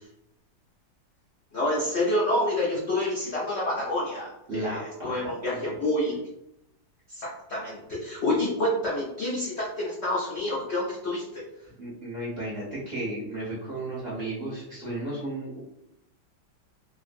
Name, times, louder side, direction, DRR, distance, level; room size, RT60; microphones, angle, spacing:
voice 1, 1.5-6.2 7.1-11.4, left 1 dB, 80° left, -5 dB, 0.6 m, -28 dB
voice 2, 4.5-5.6 8.2-8.3 11.8-15.6, right 1 dB, 55° right, -7 dB, 0.6 m, -34 dB
2.8 x 2.5 x 2.5 m, 0.85 s
omnidirectional pair, 2.0 m